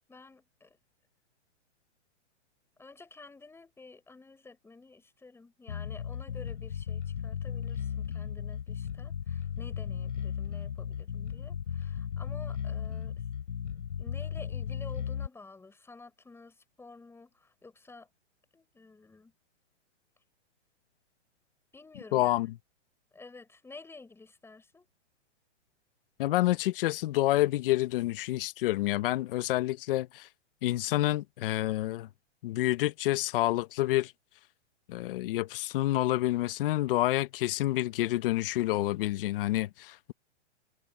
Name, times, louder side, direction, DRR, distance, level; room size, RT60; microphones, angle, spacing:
voice 1, 0.1-0.8 2.8-13.2 14.0-18.1 18.5-19.3 21.7-22.5 23.1-24.9, left 3 dB, 5° left, 6.8 m, -51 dB
Bass guitar, 5.7-15.3, left 8 dB, 90° left, 3.2 m, -36 dB
voice 2, 22.1-22.5 26.2-30.3 30.6-32.1 32.4-34.1 34.9-40.1, left 16 dB, 50° left, 1.4 m, -28 dB
hypercardioid pair, 145°, 36 cm